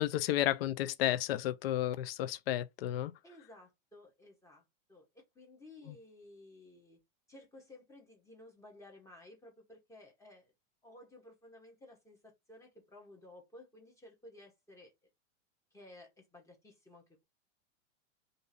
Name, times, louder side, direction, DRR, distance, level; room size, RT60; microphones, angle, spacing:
voice 1, 0.0-3.1, left 13 dB, 55° left, 0.4 m, -32 dB
voice 2, 3.2-7.0 7.3-10.5 10.8-14.9 15.7-17.2, left 1 dB, 10° left, 0.8 m, -56 dB
2.7 x 2.6 x 3.9 m
supercardioid pair, 145°, 37 cm